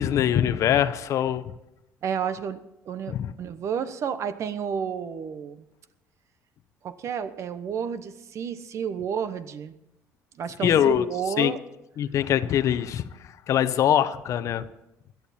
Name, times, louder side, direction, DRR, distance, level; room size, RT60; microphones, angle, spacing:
voice 1, 0.0-1.5 3.1-3.3 10.6-11.1 11.4-11.5 12.0-14.6, left 10 dB, 60° left, 14 dB, 0.8 m, -23 dB
voice 2, 2.0-2.6 2.8-5.6 6.8-9.7 10.3-11.6, right 7 dB, 55° right, 13 dB, 1.0 m, -31 dB
17.5 x 12.0 x 4.3 m, 0.91 s
cardioid pair, 95°, 6 cm